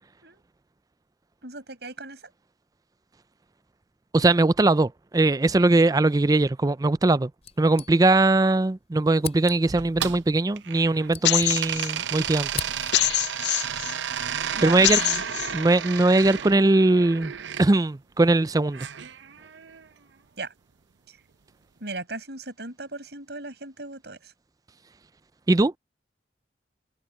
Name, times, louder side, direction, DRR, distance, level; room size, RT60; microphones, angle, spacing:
voice 1, 1.4-2.2 14.5-15.2 20.4-20.5 21.8-24.3, right 2 dB, 65° right, 6.3 m, -37 dB
voice 2, 4.1-7.3 7.6-12.5 14.6-15.0 15.5-17.3 17.6-18.9 25.5-25.7, right 2 dB, 20° right, 0.4 m, -20 dB
sound 1, 7.4-8.4 8.7-8.8 9.2-9.9 10.7-12.0 12.2-13.2, left 7 dB, 35° left, 7.7 m, -39 dB
sound 2, 9.7-11.1 11.5-17.6 18.7-19.9, right 8 dB, 85° right, 0.7 m, -32 dB
sound 3, 11.2-11.9 12.9-13.9 14.8-15.5, left 15 dB, 65° left, 0.4 m, -24 dB
head